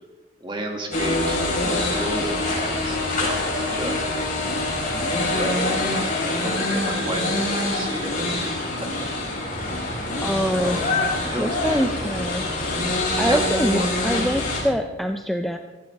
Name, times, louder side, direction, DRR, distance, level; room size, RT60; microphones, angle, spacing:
voice 1, 0.4-4.0 4.9-8.9 9.6-12.2 13.2-13.9, right 1 dB, 25° right, 1 dB, 2.2 m, -32 dB
sound 1, 0.9-14.6, left 2 dB, 45° left, 4.8 m, -25 dB
sound 2, 6.6-9.5, left 1 dB, 85° left, 2.8 m, -40 dB
voice 2, 10.2-11.0 11.4-12.4 13.2-15.6, equal, ahead, 5 dB, 0.5 m, -25 dB
17.5 x 14.0 x 3.5 m, 1.2 s
head